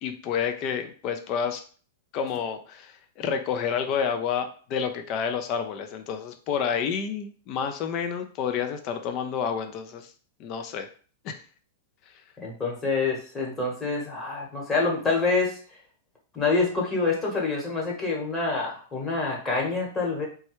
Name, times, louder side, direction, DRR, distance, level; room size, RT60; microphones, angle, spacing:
voice 1, 0.0-1.6 2.1-10.1 10.4-10.9 11.2-11.3, left 7 dB, 45° left, 6 dB, 0.5 m, -29 dB
voice 2, 12.4-15.6 16.3-20.2, left 3 dB, 20° left, -2 dB, 1.2 m, -26 dB
3.1 x 2.2 x 3.0 m, 0.41 s
hypercardioid pair, 115°, 0 cm